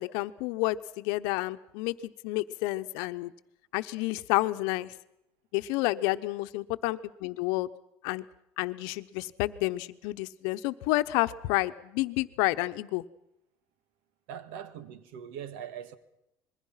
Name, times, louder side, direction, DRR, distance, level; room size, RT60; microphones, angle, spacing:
voice 1, 0.0-3.3 3.7-4.9 5.5-7.7 8.0-8.2 8.6-13.0, left 19 dB, 80° left, 0.9 m, -30 dB
voice 2, 14.3-16.0, right 9 dB, 85° right, 1.8 m, -41 dB
26.5 x 21.5 x 5.8 m
cardioid pair, 140°, 7 cm